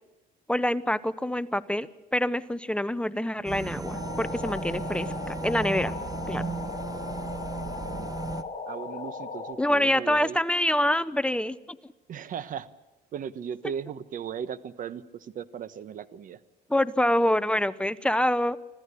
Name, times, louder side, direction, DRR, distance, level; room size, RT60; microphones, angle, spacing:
voice 1, 0.5-5.9 6.3-6.4 9.6-11.6 16.7-18.6, left 1 dB, 5° left, 14 dB, 0.8 m, -26 dB
sound 1, 3.4-8.4, right 4 dB, 20° right, 1.1 m, -35 dB
sound 2, 3.8-9.5, left 4 dB, 45° left, 4.8 m, -37 dB
voice 2, 7.6-8.1 8.7-10.4 12.1-12.7 13.1-16.4, right 8 dB, 50° right, 15 dB, 1.3 m, -37 dB
25.5 x 15.5 x 8.4 m, 1.1 s
cardioid pair, 110°, 17 cm